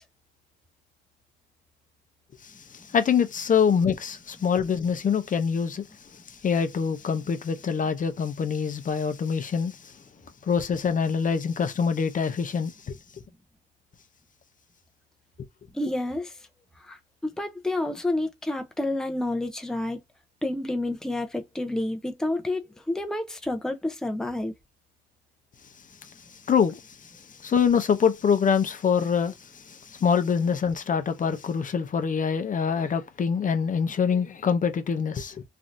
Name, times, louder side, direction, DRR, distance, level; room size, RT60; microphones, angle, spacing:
voice 1, 2.4-5.8 6.3-9.8 10.4-13.0 26.5-26.8 27.4-35.4, left 6 dB, 40° left, 0.7 m, -25 dB
voice 2, 15.7-16.3 16.9-17.0 17.4-20.0 20.4-24.5, left 1 dB, 5° left, 0.7 m, -29 dB
3.2 x 2.7 x 2.6 m
cardioid pair, 90°, 20 cm